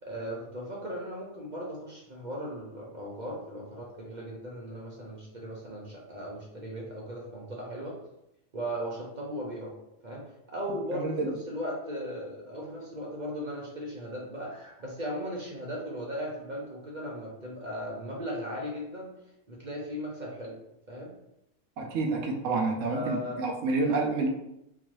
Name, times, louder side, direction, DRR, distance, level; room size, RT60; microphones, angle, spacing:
voice 1, 0.0-7.9 8.5-9.7 10.0-10.2 10.5-19.1 19.5-20.5 20.9-21.1 22.9-23.4, equal, 45° right, -3 dB, 0.6 m, -37 dB
voice 2, 10.9-11.3 21.8-24.3, right 3 dB, 70° right, 1 dB, 0.9 m, -28 dB
3.8 x 2.6 x 3.0 m, 0.83 s
omnidirectional pair, 1.5 m